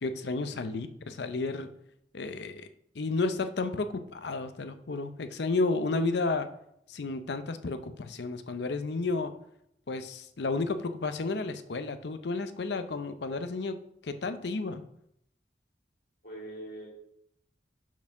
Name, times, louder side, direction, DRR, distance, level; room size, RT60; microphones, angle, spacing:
voice 1, 0.0-1.7 2.1-2.7 2.9-6.5 6.9-9.3 9.9-13.8 14.0-14.8, left 3 dB, 70° left, 10 dB, 0.6 m, -32 dB
voice 2, 16.2-16.9, right 1 dB, 55° left, -3 dB, 2.5 m, -43 dB
6.0 x 4.4 x 5.9 m, 0.76 s
head